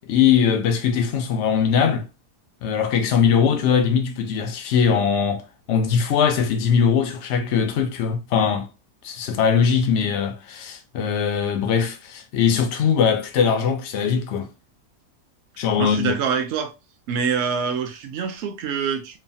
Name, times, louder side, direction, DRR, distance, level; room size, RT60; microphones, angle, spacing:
voice 1, 0.1-2.1 2.6-5.4 5.7-8.7 9.0-14.5 15.6-16.1, left 7 dB, 90° left, 0.6 m, -21 dB
voice 2, 15.8-16.7 17.1-19.2, right 6 dB, 80° right, 0.6 m, -25 dB
3.1 x 2.0 x 2.6 m
omnidirectional pair, 1.8 m